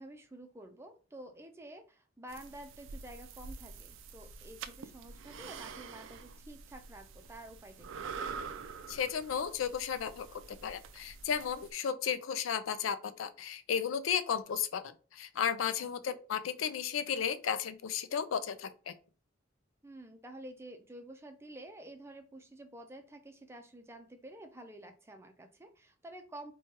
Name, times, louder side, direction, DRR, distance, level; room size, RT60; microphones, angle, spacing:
voice 1, 0.0-8.0 15.8-16.2 19.8-26.5, right 1 dB, 15° right, 0.5 m, -50 dB
sound 1, 2.3-11.7, right 5 dB, 80° right, 0.4 m, -46 dB
voice 2, 8.9-18.9, left 7 dB, 85° left, 0.4 m, -34 dB
4.5 x 2.3 x 2.8 m
head